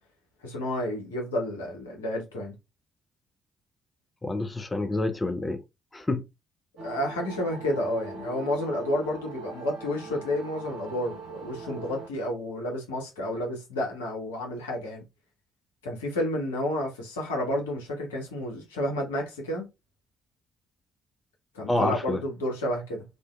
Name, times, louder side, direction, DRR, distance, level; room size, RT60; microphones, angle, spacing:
voice 1, 0.4-2.5 6.8-15.0 15.8-19.6 21.5-23.0, left 1 dB, 80° left, 0.7 m, -30 dB
voice 2, 4.2-5.6 5.9-6.2 21.7-22.2, left 2 dB, 20° left, 0.4 m, -28 dB
sound 1, 6.8-12.1, right 3 dB, 65° right, 0.8 m, -41 dB
2.5 x 2.1 x 2.2 m
figure-of-eight pair, 45°, 0 cm